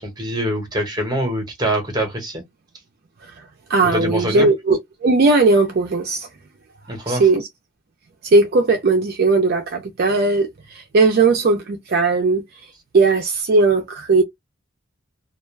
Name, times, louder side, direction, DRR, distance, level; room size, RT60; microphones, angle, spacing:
voice 1, 0.0-2.4 3.8-4.5 6.9-7.2, equal, 20° right, 0.9 m, -24 dB
voice 2, 3.7-6.3 7.1-7.5 8.2-12.4 12.9-14.2, right 3 dB, 45° right, 0.4 m, -17 dB
2.3 x 2.1 x 3.1 m
head